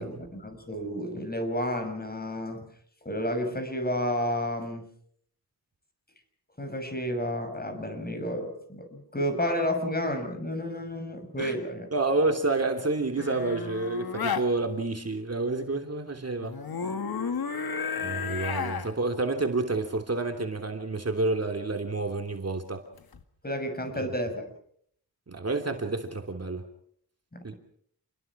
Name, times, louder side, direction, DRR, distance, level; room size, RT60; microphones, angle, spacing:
voice 1, 0.0-2.7 3.0-4.9 6.6-12.1 18.0-18.1 23.4-24.4 27.3-27.6, equal, 25° left, 7 dB, 6.3 m, -31 dB
voice 2, 11.9-16.6 18.0-22.8 23.9-24.1 25.3-26.6 27.4-27.6, right 3 dB, 40° right, 4 dB, 3.1 m, -29 dB
sound 1, 13.2-14.5 16.4-18.9 23.0-23.2, left 6 dB, 65° left, 2.0 m, -32 dB
29.0 x 21.5 x 6.0 m, 0.65 s
wide cardioid pair, 90°, 39 cm